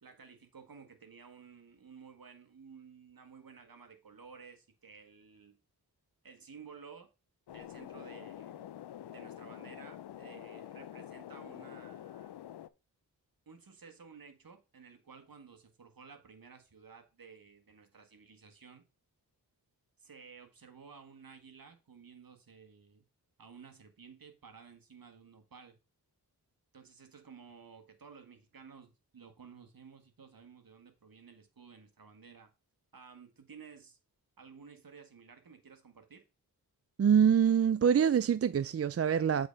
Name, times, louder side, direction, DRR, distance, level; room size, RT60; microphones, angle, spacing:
voice 1, 0.0-5.6 6.2-7.1 7.5-8.7 9.1-12.3 13.4-18.8 20.0-23.0 23.4-25.8 26.7-32.5 32.9-34.0 34.4-36.2, right 6 dB, 60° right, 1.7 m, -54 dB
sound 1, 7.5-12.7, left 11 dB, 80° left, 0.5 m, -47 dB
voice 2, 37.0-39.5, right 8 dB, 40° right, 0.4 m, -25 dB
8.0 x 3.9 x 5.3 m
cardioid pair, 50°, 39 cm